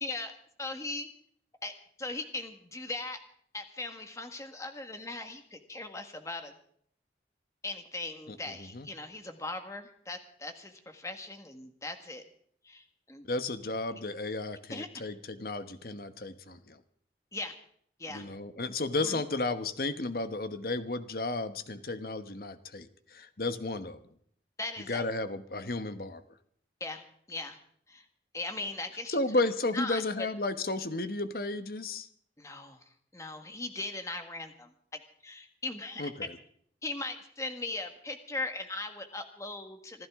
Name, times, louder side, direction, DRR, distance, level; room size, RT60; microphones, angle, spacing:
voice 1, 0.0-1.1 1.6-3.2 3.5-6.5 7.6-12.2 12.6-13.3 14.7-14.9 17.3-17.6 18.0-18.3 19.0-19.2 24.6-25.0 26.8-27.6 27.9-28.0 28.3-29.2 29.7-30.0 32.4-32.8 33.1-36.1 36.8-40.1, left 2 dB, 15° left, 6 dB, 1.5 m, -39 dB
voice 2, 8.3-8.9 13.2-16.8 18.1-24.1 24.9-26.2 29.1-32.1 36.0-36.3, left 2 dB, 55° left, 10 dB, 1.1 m, -33 dB
26.0 x 12.5 x 3.6 m, 0.64 s
head